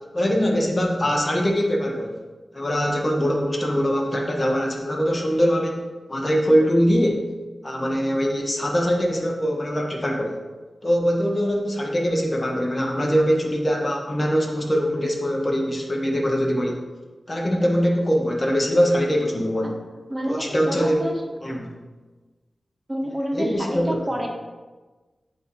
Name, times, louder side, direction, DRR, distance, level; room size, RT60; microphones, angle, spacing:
voice 1, 0.1-2.2 2.5-7.3 7.6-10.4 10.8-16.8 17.3-19.8 20.2-21.0 21.4-21.7 23.3-24.0, equal, 30° left, 0 dB, 0.9 m, -22 dB
voice 2, 20.1-21.2 22.9-24.3, equal, 20° right, 1 dB, 1.0 m, -28 dB
7.9 x 2.7 x 4.5 m, 1.3 s
wide cardioid pair, 70°, 0 cm